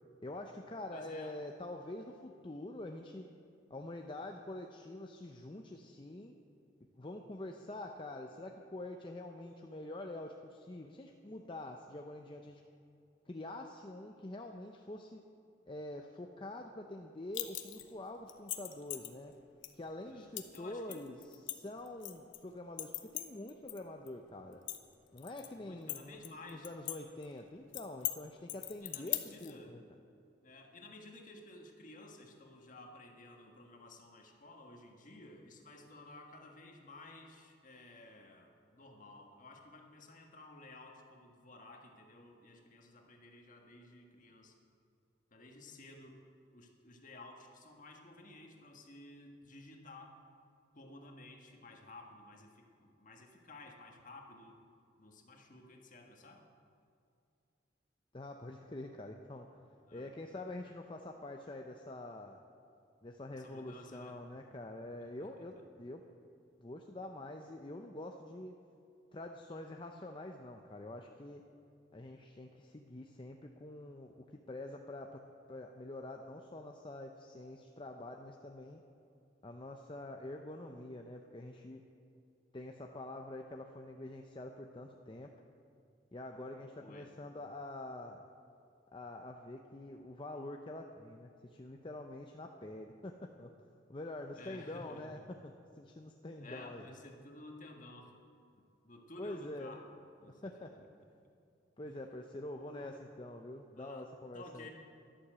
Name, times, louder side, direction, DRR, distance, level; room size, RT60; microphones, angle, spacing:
voice 1, 0.2-3.3 3.7-6.3 7.0-12.6 13.3-15.2 15.7-19.3 19.7-24.6 25.1-29.8 58.1-59.5 59.9-62.4 63.0-66.0 66.6-68.5 69.1-71.4 71.9-75.2 75.5-78.8 79.4-81.8 82.5-85.3 86.1-88.2 88.9-93.5 93.9-95.5 95.8-96.9 99.2-99.8 100.4-100.8 101.8-104.7, left 1 dB, 25° left, 3 dB, 0.6 m, -46 dB
voice 2, 0.9-1.4 20.1-21.1 25.5-26.7 28.8-29.8 30.4-44.5 45.3-46.2 46.5-50.2 50.7-54.6 55.0-56.4 59.6-60.1 63.3-64.2 65.0-65.3 86.8-87.1 94.3-95.3 96.4-98.2 98.8-100.7 101.8-101.9 102.7-102.9 103.8-104.7, left 2 dB, 45° left, 2 dB, 1.6 m, -54 dB
sound 1, 17.3-17.9 18.3-19.1 19.6-19.7 20.4-20.6 20.9-22.4 22.8-23.8 24.1-24.2 24.5-25.5 25.9-27.0 27.2-27.3 27.7-28.2 28.5-29.5, left 14 dB, 85° left, 1.0 m, -39 dB
11.5 x 11.5 x 7.6 m, 2.5 s
head